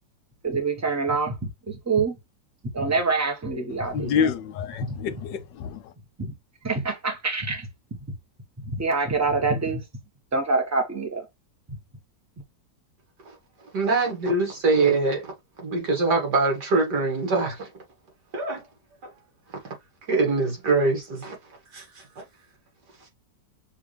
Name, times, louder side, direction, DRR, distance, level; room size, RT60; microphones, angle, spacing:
voice 1, 0.4-2.1 2.7-4.1 6.2-6.3 6.6-7.7 8.6-9.8 10.3-11.2, right 4 dB, 10° right, 0.9 m, -25 dB
voice 2, 3.8-5.9, left 7 dB, 85° left, 1.3 m, -27 dB
voice 3, 13.7-15.3 15.6-17.7 18.3-18.6 20.1-21.3 21.7-22.2, right 3 dB, 65° right, 2.5 m, -23 dB
6.1 x 2.7 x 3.2 m
omnidirectional pair, 1.9 m